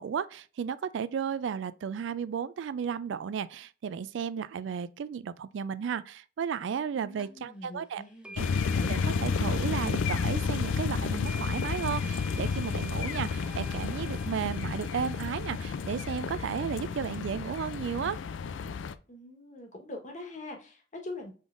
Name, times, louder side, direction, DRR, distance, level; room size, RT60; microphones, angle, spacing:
voice 1, 0.0-8.0 8.4-8.5 8.9-18.2, right 7 dB, 70° right, 0.3 m, -34 dB
voice 2, 6.9-8.3 19.1-21.3, left 2 dB, 40° left, 1.2 m, -43 dB
sound 1, 7.2-7.3 8.2-18.3, equal, 5° right, 0.5 m, -48 dB
sound 2, 8.4-18.9, left 5 dB, 80° left, 0.4 m, -31 dB
5.2 x 3.8 x 2.4 m
head